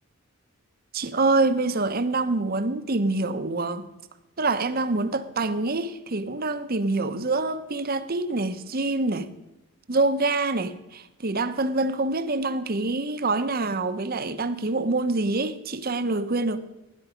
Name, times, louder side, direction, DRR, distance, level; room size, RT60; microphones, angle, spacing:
voice 1, 0.9-3.9 4.4-9.3 9.9-16.6, right 2 dB, 45° right, 0.9 m, -26 dB
17.0 x 10.5 x 5.1 m
head